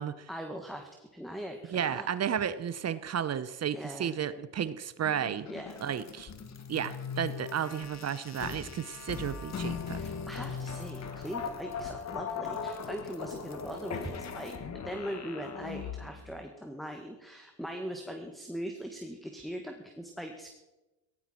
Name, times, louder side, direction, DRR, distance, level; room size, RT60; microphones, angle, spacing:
voice 1, 0.3-2.4 3.7-4.2 5.5-5.8 9.9-20.5, equal, ahead, 5 dB, 1.8 m, -41 dB
voice 2, 1.7-5.5 5.8-6.3 6.7-10.0, right 8 dB, 35° right, 15 dB, 0.9 m, -33 dB
sound 1, 5.0-16.3, left 6 dB, 35° left, 2.0 m, -39 dB
17.5 x 14.5 x 4.5 m, 1.0 s
supercardioid pair, 90°, 47 cm